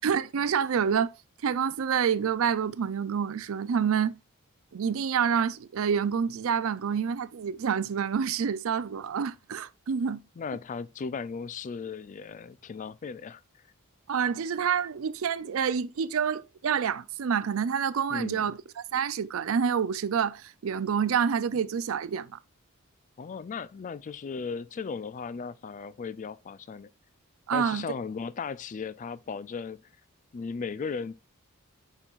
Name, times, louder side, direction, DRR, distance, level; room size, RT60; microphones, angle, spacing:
voice 1, 0.0-1.1 1.4-4.1 4.7-10.2 14.1-18.6 18.9-22.4 27.5-27.8, right 7 dB, 65° right, 0.4 m, -27 dB
voice 2, 10.4-13.4 18.1-18.5 23.2-26.9 27.5-29.9 30.3-31.1, left 5 dB, 35° left, 0.3 m, -36 dB
8.8 x 4.6 x 2.4 m
head